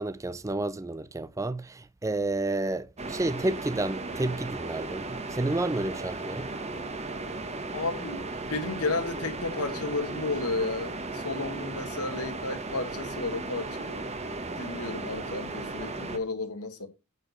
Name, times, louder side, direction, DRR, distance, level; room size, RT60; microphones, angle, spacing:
voice 1, 0.0-6.5, right 2 dB, 15° right, 0.5 m, -30 dB
sound 1, 3.0-16.2, right 2 dB, 30° right, 1.3 m, -36 dB
voice 2, 7.7-8.2 8.5-14.0 14.6-16.9, left 3 dB, 90° left, 2.1 m, -32 dB
9.6 x 4.9 x 6.6 m
head